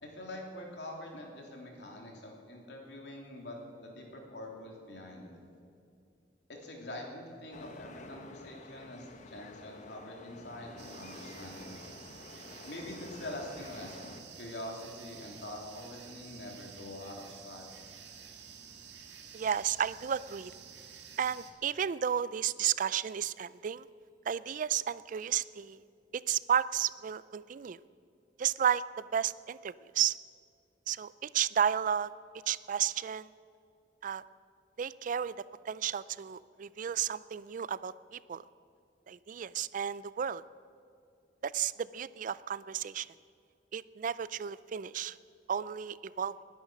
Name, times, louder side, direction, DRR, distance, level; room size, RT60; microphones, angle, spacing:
voice 1, 0.0-5.4 6.5-11.8 12.7-17.7, left 1 dB, 70° left, 0 dB, 3.2 m, -45 dB
sound 1, 7.5-14.2, left 2 dB, 45° left, 0.9 m, -50 dB
sound 2, 10.8-21.5, right 7 dB, 75° right, 1.8 m, -51 dB
voice 2, 19.3-20.5 21.2-23.9 24.3-25.8 26.1-27.8 28.4-30.2 30.9-32.1 32.5-33.3 34.0-34.2 34.8-35.4 35.6-38.4 39.1-40.4 41.4-43.1 43.7-45.2 45.5-46.3, right 8 dB, 50° right, 18 dB, 0.4 m, -32 dB
20.5 x 10.5 x 6.2 m, 2.4 s
head